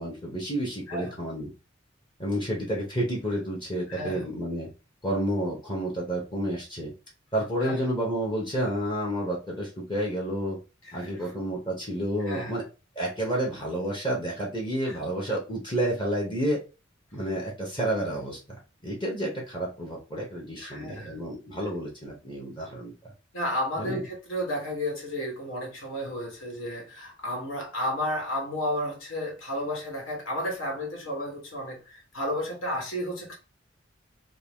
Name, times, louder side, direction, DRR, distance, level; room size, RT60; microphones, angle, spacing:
voice 1, 0.0-1.5 2.2-4.7 5.0-6.9 7.3-10.6 10.9-12.6 12.9-16.6 17.1-18.4 18.8-22.9 23.8-24.0, right 1 dB, 25° left, 1.0 m, -30 dB
voice 2, 3.9-4.3 7.6-7.8 10.8-11.3 12.2-12.6 14.9-15.0 20.6-21.2 23.3-33.3, left 1 dB, 75° left, 1.5 m, -32 dB
3.7 x 2.3 x 3.6 m
head